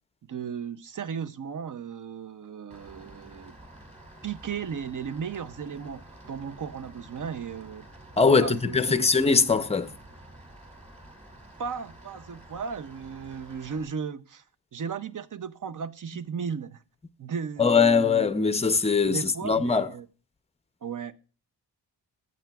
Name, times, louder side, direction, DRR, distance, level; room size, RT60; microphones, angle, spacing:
voice 1, 0.3-3.6 4.2-7.9 8.3-9.5 11.6-14.4 14.7-16.8 17.2-18.3 19.1-20.1 20.8-21.1, right 6 dB, 45° right, 0.6 m, -35 dB
Rain, 2.7-13.8, right 1 dB, 15° right, 2.4 m, -49 dB
voice 2, 8.2-9.9 17.6-19.9, left 5 dB, 15° left, 0.5 m, -21 dB
14.5 x 7.5 x 2.3 m
wide cardioid pair, 125°, 43 cm